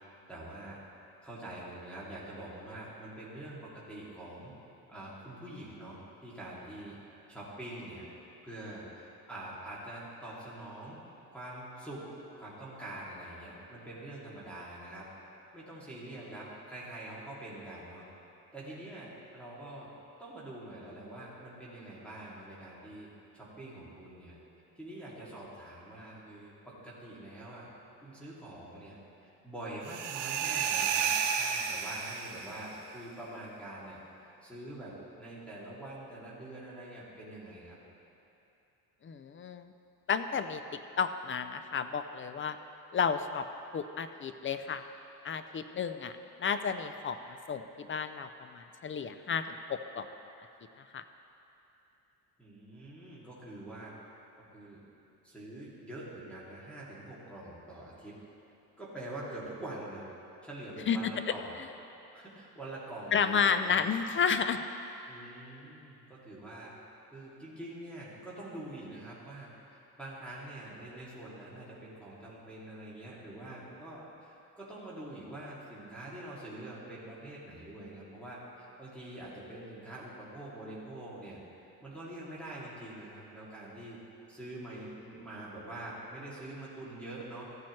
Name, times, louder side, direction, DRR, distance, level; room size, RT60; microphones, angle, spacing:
voice 1, 0.3-0.8 1.2-4.5 4.9-7.0 7.3-8.1 8.4-11.0 11.3-12.1 12.4-15.1 15.5-18.0 18.5-19.9 20.2-24.4 24.8-27.7 28.0-37.8 52.4-53.9 54.4-54.8 55.2-58.2 58.8-60.0 60.4-61.5 62.1-63.8 65.0-66.8 67.1-81.4 81.8-84.0 84.3-87.4, right 1 dB, 5° left, -9 dB, 2.5 m, -45 dB
sound 1, 29.8-32.6, right 7 dB, 85° right, 0.8 m, -31 dB
voice 2, 39.0-39.7 40.1-42.6 42.9-43.5 43.7-44.8 45.2-46.1 46.4-47.2 47.5-50.1 50.9-51.0 60.9-61.1 63.1-64.6, left 6 dB, 30° left, 10 dB, 0.5 m, -31 dB
14.5 x 8.6 x 3.2 m, 2.8 s
cardioid pair, 95°, 40 cm